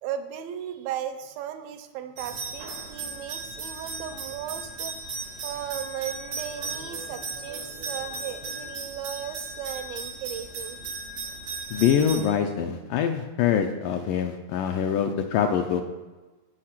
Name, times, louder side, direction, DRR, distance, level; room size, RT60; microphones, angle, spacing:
voice 1, 0.0-10.8, right 10 dB, 85° right, 8 dB, 2.4 m, -36 dB
sound 1, 2.2-12.2, right 3 dB, 65° right, 1.4 m, -36 dB
voice 2, 11.7-15.8, left 8 dB, 80° left, 4 dB, 2.0 m, -24 dB
8.5 x 6.5 x 5.8 m, 1.2 s
omnidirectional pair, 4.3 m